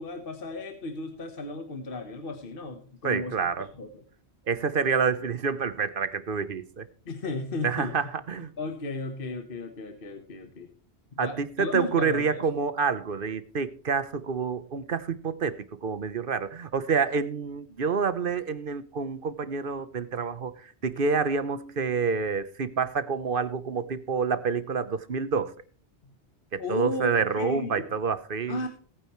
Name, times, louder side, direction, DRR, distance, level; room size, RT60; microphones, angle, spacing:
voice 1, 0.0-4.0 7.0-7.9 8.6-10.7 11.2-12.5 26.0-26.1 26.6-27.8 28.5-28.7, left 2 dB, 55° left, 1.4 m, -34 dB
voice 2, 3.0-3.7 4.5-6.9 7.6-8.5 11.2-25.5 26.5-28.6, right 5 dB, 55° right, 1.1 m, -28 dB
19.0 x 9.0 x 3.1 m
omnidirectional pair, 1.1 m